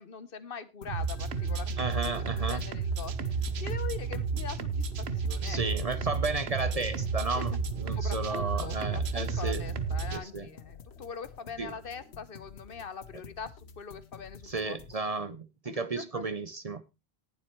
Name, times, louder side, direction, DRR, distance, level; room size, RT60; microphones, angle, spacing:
voice 1, 0.0-5.6 7.3-7.4 7.9-14.8 15.6-16.2, left 6 dB, 60° left, 1.1 m, -43 dB
sound 1, 0.8-15.0, left 6 dB, 85° left, 1.2 m, -50 dB
sound 2, 0.9-10.2, right 4 dB, 85° right, 1.2 m, -32 dB
voice 2, 1.8-2.6 5.4-9.6 10.1-10.5 11.6-11.7 14.4-16.8, right 3 dB, 40° right, 0.7 m, -33 dB
19.0 x 7.6 x 3.0 m
omnidirectional pair, 1.0 m